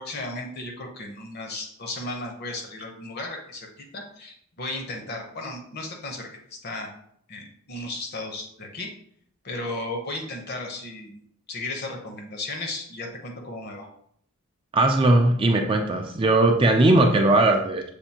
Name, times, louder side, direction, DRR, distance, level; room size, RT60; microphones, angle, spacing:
voice 1, 0.0-6.9 7.3-8.9 9.4-11.2 11.5-13.9, left 2 dB, 50° left, 3 dB, 0.8 m, -35 dB
voice 2, 14.7-17.8, right 2 dB, 25° right, 3 dB, 0.4 m, -19 dB
6.6 x 2.6 x 2.8 m, 0.66 s
head